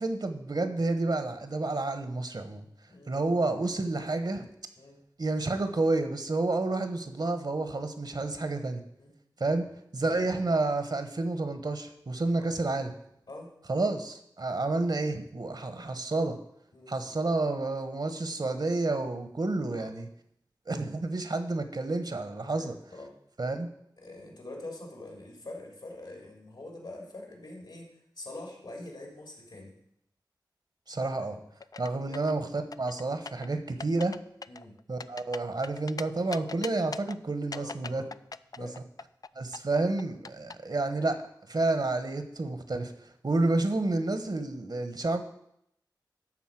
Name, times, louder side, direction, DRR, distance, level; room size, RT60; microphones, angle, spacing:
voice 1, 0.0-2.6 3.1-4.5 5.2-8.8 9.4-9.7 9.9-12.9 13.7-16.4 16.9-20.1 20.7-22.7 23.4-23.7 30.9-31.4 31.8-34.1 34.9-38.0 38.6-38.7 39.3-41.2 41.5-42.9 43.2-45.2, right 2 dB, 60° right, 9 dB, 1.2 m, -30 dB
voice 2, 2.9-3.2 4.8-5.0 9.0-9.1 10.0-10.2 12.3-12.5 13.3-13.5 15.7-15.9 16.7-17.1 19.7-19.9 22.5-23.1 24.0-27.9 28.2-29.7 31.0-31.4 32.1-32.2 34.5-34.8 37.5-38.1 38.6-38.8, left 2 dB, 80° left, 0 dB, 3.3 m, -45 dB
sound 1, 31.6-32.4 32.7-33.5 33.8-34.2 34.4-36.0 36.3-37.2 37.5-39.3 39.5-40.5, left 4 dB, 50° left, 0.4 m, -40 dB
12.5 x 4.1 x 7.6 m, 0.74 s
cardioid pair, 40°, 8 cm